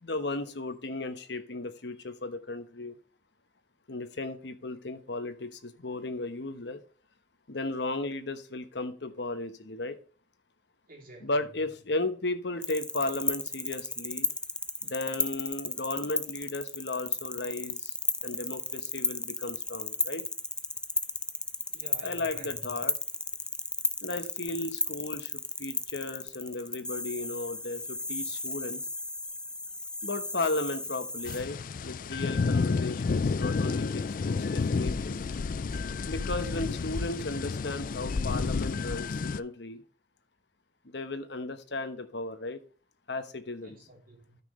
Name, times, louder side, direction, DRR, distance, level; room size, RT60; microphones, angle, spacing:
voice 1, 0.0-3.0 3.9-6.8 7.5-10.0 11.2-14.3 14.8-17.9 18.2-20.2 22.0-22.9 24.0-28.8 30.0-35.2 36.0-39.1 39.4-39.8 40.8-42.6 43.1-43.8, left 2 dB, 65° left, 1.1 m, -35 dB
voice 2, 10.9-11.3 21.7-22.7 43.6-44.4, right 2 dB, 50° right, 3.5 m, -49 dB
sound 1, 12.6-31.4, left 2 dB, 5° left, 0.6 m, -34 dB
sound 2, 31.3-39.4, left 4 dB, 45° left, 0.4 m, -30 dB
13.0 x 6.0 x 3.2 m
head